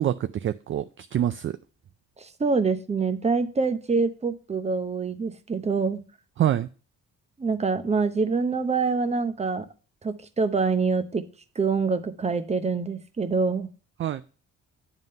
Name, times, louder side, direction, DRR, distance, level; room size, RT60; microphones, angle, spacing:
voice 1, 0.0-1.6 6.4-6.7 14.0-14.2, right 11 dB, 40° right, 12 dB, 0.4 m, -26 dB
voice 2, 2.2-6.0 7.4-9.7 10.0-11.2 11.6-13.7, right 4 dB, 20° right, 11 dB, 0.7 m, -25 dB
9.4 x 3.6 x 5.3 m, 0.37 s
cardioid pair, 90°, 30 cm